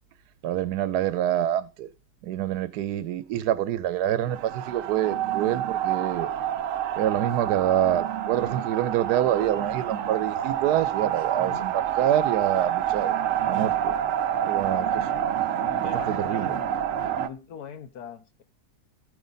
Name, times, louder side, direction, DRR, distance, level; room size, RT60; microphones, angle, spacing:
voice 1, 0.4-1.9 2.2-6.3 7.0-13.1 13.5-14.0 14.5-15.1 15.8-16.6, right 11 dB, 85° right, 1.2 m, -26 dB
sound 1, 4.3-17.3, right 10 dB, 65° right, 0.9 m, -28 dB
voice 2, 11.4-11.7 14.9-15.3 15.6-16.8 17.2-18.4, left 8 dB, 80° left, 1.5 m, -42 dB
14.5 x 5.1 x 4.0 m
omnidirectional pair, 1.7 m